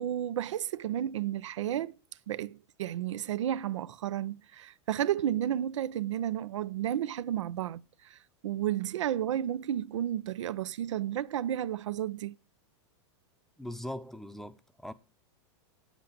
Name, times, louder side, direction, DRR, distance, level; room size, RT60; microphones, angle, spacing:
voice 1, 0.0-2.0 2.3-12.4, right 11 dB, 85° right, 0.7 m, -32 dB
voice 2, 13.6-14.9, left 1 dB, ahead, 0.7 m, -40 dB
9.0 x 8.2 x 6.8 m
supercardioid pair, 135°, 15 cm